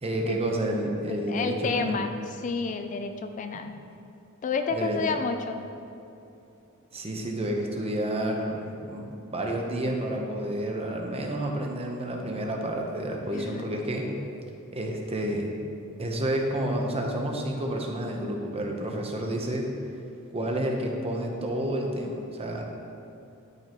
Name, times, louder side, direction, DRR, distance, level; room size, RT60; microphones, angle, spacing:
voice 1, 0.0-2.0 4.7-5.0 6.9-14.1 14.7-15.5 16.0-19.7 20.3-22.6, right 1 dB, 30° right, 1 dB, 0.9 m, -30 dB
voice 2, 1.1-3.8 4.4-5.7 13.3-13.7, left 4 dB, 35° left, 7 dB, 0.3 m, -30 dB
12.0 x 5.4 x 3.1 m, 2.8 s
head